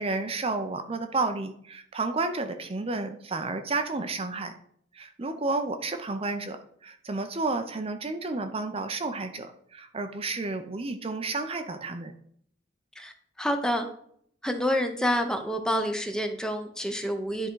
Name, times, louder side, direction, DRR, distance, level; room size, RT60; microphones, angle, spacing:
voice 1, 0.0-4.5 4.9-6.6 6.8-12.1, right 3 dB, 30° right, 7 dB, 0.6 m, -31 dB
voice 2, 13.0-13.9 14.4-17.5, equal, 5° left, 6 dB, 0.7 m, -28 dB
10.5 x 3.7 x 4.6 m, 0.64 s
head